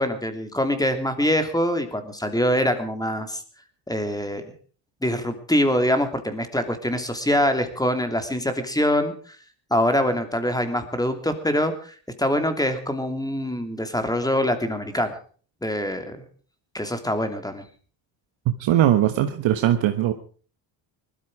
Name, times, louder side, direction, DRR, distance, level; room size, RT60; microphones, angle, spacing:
voice 1, 0.0-3.4 3.9-4.5 5.0-9.1 9.7-15.1 15.6-16.2 16.7-17.6, equal, 10° left, 8 dB, 2.8 m, -24 dB
voice 2, 18.6-20.1, right 12 dB, 65° right, 7 dB, 1.3 m, -20 dB
19.5 x 13.0 x 4.9 m, 0.42 s
supercardioid pair, 85°, 48 cm